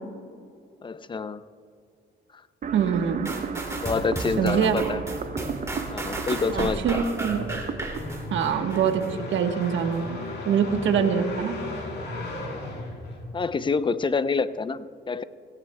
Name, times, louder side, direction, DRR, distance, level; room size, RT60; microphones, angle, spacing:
voice 1, 0.8-1.4 3.8-5.0 5.9-7.0 11.0-11.2 13.3-15.2, left 4 dB, 25° left, 14 dB, 0.5 m, -27 dB
sound 1, 2.6-9.6, right 6 dB, 40° right, 0.6 m, -36 dB
voice 2, 2.7-3.3 4.4-4.8 6.5-7.6 8.3-9.0 9.3-11.6, right 7 dB, 75° right, 5 dB, 1.2 m, -24 dB
sound 2, 3.2-9.1 9.6-9.7, right 2 dB, 15° right, 2.5 m, -34 dB
sound 3, 6.3-13.7, left 2 dB, 60° left, 3.5 m, -36 dB
17.5 x 17.0 x 2.2 m, 2.3 s
cardioid pair, 90°, 20 cm